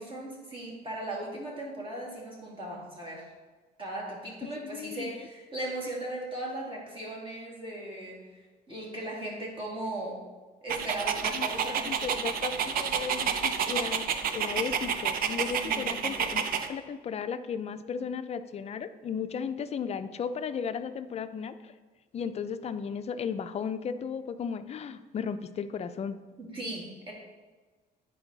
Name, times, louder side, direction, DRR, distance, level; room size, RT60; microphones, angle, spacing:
voice 1, 0.0-3.3 3.8-8.3 8.7-10.2 10.6-11.9 15.6-15.9 26.4-27.1, right 1 dB, 30° right, -3 dB, 2.4 m, -37 dB
voice 2, 4.4-5.3 11.3-11.5 11.7-21.7 22.1-26.2, left 6 dB, 40° left, 11 dB, 0.4 m, -35 dB
Dog, 10.7-16.7, right 7 dB, 60° right, 0.6 m, -30 dB
9.7 x 4.6 x 4.0 m, 1.3 s
cardioid pair, 110°, 17 cm